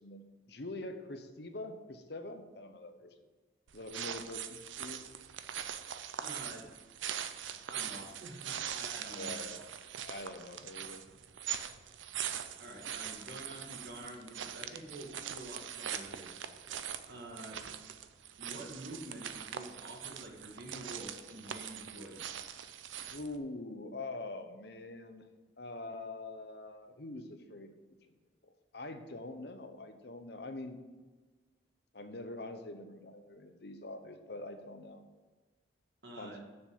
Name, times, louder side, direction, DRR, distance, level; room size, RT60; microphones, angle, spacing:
voice 1, 0.0-3.1 3.7-5.0 9.1-9.6 10.0-11.0 23.1-25.3 25.6-27.7 28.7-30.8 31.9-35.0 36.2-36.4, left 2 dB, 60° left, 7 dB, 0.9 m, -44 dB
sound 1, 3.7-23.4, right 9 dB, 85° right, 0.6 m, -42 dB
voice 2, 6.1-6.7 7.7-9.6 12.6-16.3 17.1-17.6 18.4-22.5 36.0-36.4, right 1 dB, 60° right, 0 dB, 2.0 m, -48 dB
7.2 x 6.5 x 7.5 m, 1.3 s
head